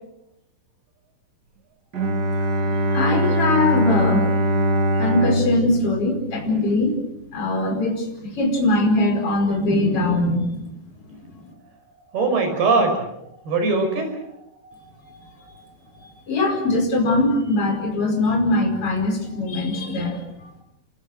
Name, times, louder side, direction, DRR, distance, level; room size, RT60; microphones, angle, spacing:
Bowed string instrument, 1.9-6.9, right 1 dB, 40° right, 1.6 m, -22 dB
voice 1, 2.9-4.3 5.0-7.0 7.3-10.7 11.1-11.2 16.0-20.2, left 2 dB, 35° left, 2 dB, 5.8 m, -21 dB
voice 2, 12.1-13.0 13.5-14.2 14.6-14.8 15.0-15.2 15.5-15.6 16.0-16.1, right 3 dB, 85° right, 6 dB, 7.5 m, -21 dB
28.5 x 25.5 x 6.6 m, 0.79 s
omnidirectional pair, 4.4 m